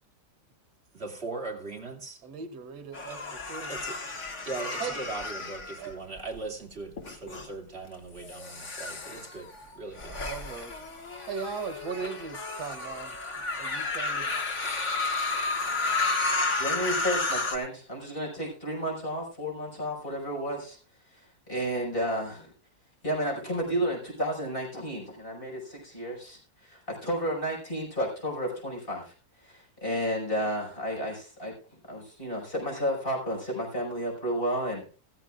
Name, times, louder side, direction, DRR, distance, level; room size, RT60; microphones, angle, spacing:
voice 1, 0.9-2.2 3.7-4.2 4.4-10.2, right 3 dB, 40° right, 2.8 m, -39 dB
voice 2, 2.2-3.7 4.8-5.0 5.8-5.9 10.1-10.8 11.3-13.2 13.6-14.4, right 6 dB, 85° right, 1.7 m, -38 dB
sound 1, 2.9-6.4 7.0-7.5 8.2-17.6, left 3 dB, 50° left, 2.1 m, -32 dB
voice 3, 16.5-20.8 21.1-22.5 23.0-29.1 29.4-31.5 31.9-35.0, equal, 35° left, 5.9 m, -32 dB
15.5 x 15.0 x 2.5 m
omnidirectional pair, 1.7 m